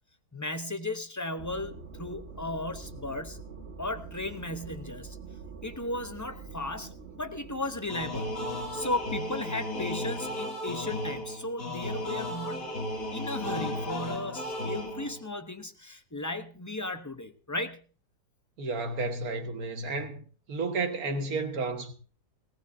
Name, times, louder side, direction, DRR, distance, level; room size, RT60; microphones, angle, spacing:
voice 1, 0.3-3.4 3.8-5.2 5.6-8.3 8.7-12.7 13.1-17.8, left 2 dB, 20° left, 0.5 m, -35 dB
sound 1, 1.4-9.2, right 4 dB, 45° right, 1.5 m, -45 dB
sound 2, 7.9-15.3, left 1 dB, 55° left, 2.8 m, -34 dB
voice 2, 18.6-20.2 20.5-21.9, right 3 dB, 65° right, 1.9 m, -32 dB
19.0 x 18.0 x 2.7 m
omnidirectional pair, 1.7 m